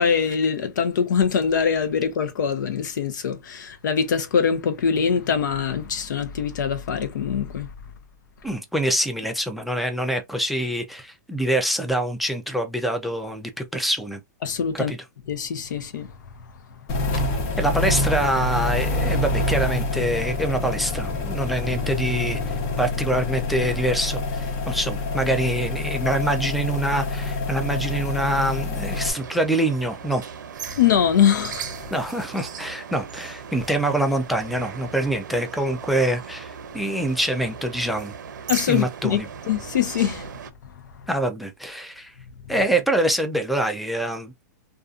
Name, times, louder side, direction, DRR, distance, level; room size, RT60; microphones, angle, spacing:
voice 1, 0.0-7.7 14.4-14.9 15.3-16.1 30.8-31.8 38.5-39.2 39.5-40.3, left 7 dB, 85° left, 0.6 m, -23 dB
voice 2, 8.4-14.2 14.7-15.0 17.6-30.2 31.9-38.1 38.7-39.3 41.1-42.1 42.5-44.3, right 1 dB, ahead, 0.3 m, -25 dB
sound 1, 16.9-29.1, left 2 dB, 40° left, 0.9 m, -26 dB
sound 2, 28.9-40.5, right 7 dB, 85° right, 0.6 m, -37 dB
2.6 x 2.4 x 2.3 m
hypercardioid pair, 150°, 10 cm